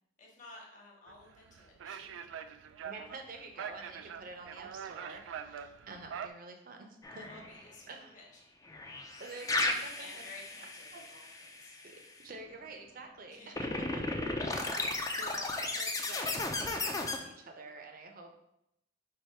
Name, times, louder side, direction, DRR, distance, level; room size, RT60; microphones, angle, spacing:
voice 1, 0.2-2.2 7.1-8.4 9.9-11.8 13.3-13.5, left 2 dB, 40° left, -1 dB, 1.1 m, -54 dB
sound 1, 1.1-6.3, right 7 dB, 85° right, 0.3 m, -44 dB
voice 2, 2.8-7.4 7.9-8.2 9.2-10.2 10.9-11.0 12.2-14.0 14.6-18.4, right 3 dB, 50° right, 4 dB, 0.6 m, -48 dB
sound 2, 7.0-7.6 8.7-11.8 13.6-17.2, left 2 dB, 20° left, 0.4 m, -35 dB
4.7 x 2.6 x 4.4 m, 0.81 s
head